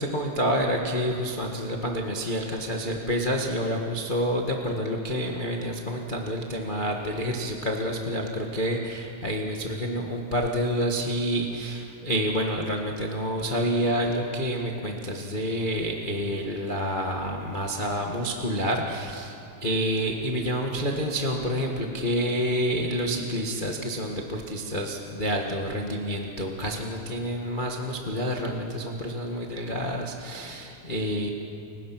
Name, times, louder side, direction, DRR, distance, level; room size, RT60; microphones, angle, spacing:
voice 1, 0.0-31.3, equal, 70° left, 0 dB, 0.4 m, -28 dB
29.5 x 17.0 x 6.0 m, 2.7 s
omnidirectional pair, 3.6 m